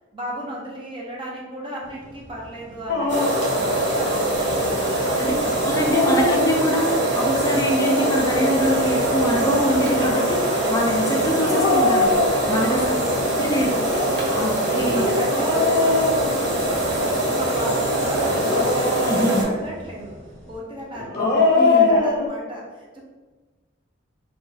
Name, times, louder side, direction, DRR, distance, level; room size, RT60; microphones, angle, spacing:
voice 1, 0.1-6.1 12.5-13.3 14.3-20.2 20.5-23.0, right 1 dB, 25° right, -4 dB, 0.6 m, -35 dB
sound 1, 1.8-20.6, equal, 85° right, 1.2 m, -42 dB
Dog, 2.9-3.5 5.6-7.0 9.1-9.8 11.4-12.8 13.8-16.9 18.2-19.6 20.9-22.3, left 3 dB, 60° left, 0.6 m, -23 dB
sound 2, 3.1-19.4, right 1 dB, 65° right, 0.7 m, -23 dB
voice 2, 5.2-12.1 12.5-13.0 13.4-13.8 14.3-15.2 19.1-19.5 21.2-22.0, equal, 20° left, -1 dB, 0.3 m, -24 dB
2.9 x 2.2 x 2.6 m, 1.3 s
head